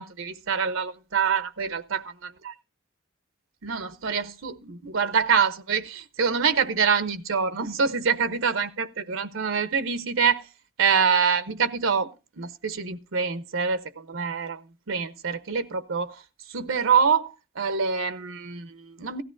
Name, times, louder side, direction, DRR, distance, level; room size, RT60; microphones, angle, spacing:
voice 1, 0.0-2.5 3.6-10.5 10.8-12.1 12.4-14.6 14.9-16.2 16.5-19.2, right 6 dB, 80° right, 0.8 m, -25 dB
16.5 x 13.5 x 2.5 m
head